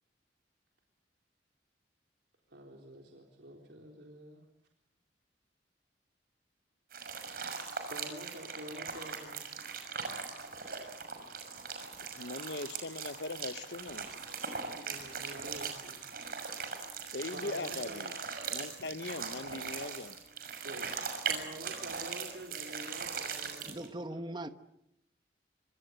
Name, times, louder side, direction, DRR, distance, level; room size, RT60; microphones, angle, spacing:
voice 1, 2.5-4.4 7.7-9.4 14.6-16.0 17.3-18.0 20.6-24.5, right 1 dB, 80° right, 4.0 m, -48 dB
sound 1, 6.9-23.9, right 5 dB, 55° right, 6.1 m, -40 dB
voice 2, 12.0-14.1 17.1-18.1 18.5-20.2, left 3 dB, 70° left, 1.0 m, -40 dB
voice 3, 23.6-24.5, right 1 dB, 25° right, 1.2 m, -40 dB
27.0 x 25.5 x 8.1 m
head